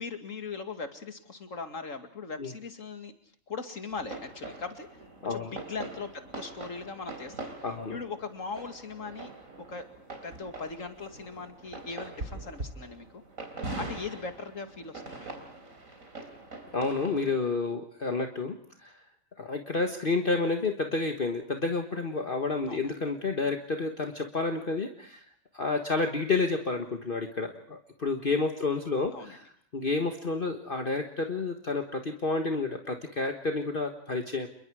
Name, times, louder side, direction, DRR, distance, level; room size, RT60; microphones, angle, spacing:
voice 1, 0.0-3.2 3.5-4.9 5.3-7.5 7.9-9.3 9.6-9.9 10.2-13.1 13.8-15.4 22.7-22.9 29.1-29.4, left 4 dB, 70° left, 7 dB, 2.7 m, -39 dB
sound 1, 3.9-17.3, right 2 dB, 80° right, 4.1 m, -43 dB
voice 2, 7.6-8.0 16.7-19.0 19.4-25.2 25.5-29.5 29.7-34.5, left 3 dB, 40° left, 4 dB, 1.6 m, -30 dB
29.0 x 22.0 x 4.9 m, 0.64 s
omnidirectional pair, 1.4 m